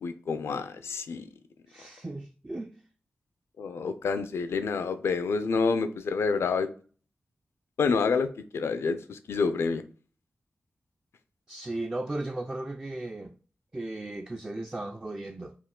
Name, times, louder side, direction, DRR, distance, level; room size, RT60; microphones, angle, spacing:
voice 1, 0.0-1.3 3.6-6.7 7.8-9.8, left 5 dB, 85° left, 0.4 m, -28 dB
voice 2, 1.7-2.7 11.5-13.4 13.7-15.6, right 2 dB, 20° right, 0.3 m, -36 dB
4.3 x 2.3 x 3.6 m
cardioid pair, 70°, 4 cm